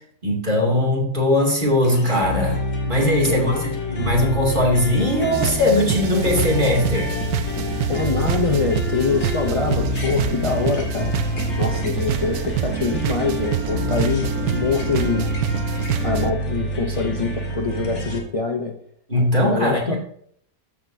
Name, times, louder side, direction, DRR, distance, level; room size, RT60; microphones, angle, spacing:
voice 1, 0.2-7.2 19.1-20.0, left 1 dB, 30° right, -3 dB, 2.7 m, -20 dB
sound 1, 1.8-18.2, left 1 dB, 45° left, 1.8 m, -27 dB
voice 2, 3.3-3.6 7.9-11.1 11.6-15.3 16.0-18.7 19.4-20.0, left 4 dB, 65° left, 2 dB, 0.3 m, -24 dB
sound 2, 5.3-16.3, right 11 dB, 75° right, 1.0 m, -27 dB
13.0 x 7.2 x 2.7 m, 0.65 s
omnidirectional pair, 1.7 m